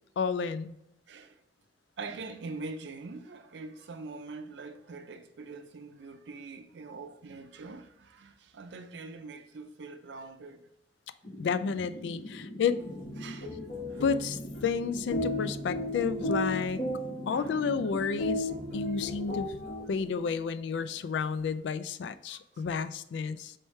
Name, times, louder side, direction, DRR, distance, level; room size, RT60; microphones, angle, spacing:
voice 1, 0.2-0.7 11.4-12.8 14.0-16.8 17.3-19.6 19.9-23.5, left 5 dB, 80° left, 0.3 m, -31 dB
voice 2, 1.1-1.4 2.0-10.6 13.2-13.5 13.9-14.0 17.3-17.6 22.3-22.6, right 3 dB, 75° right, 0.5 m, -43 dB
sound 1, 11.2-18.1, equal, 40° left, 0.6 m, -44 dB
sound 2, 12.7-20.4, left 1 dB, 55° left, 1.4 m, -35 dB
4.5 x 3.2 x 3.1 m
head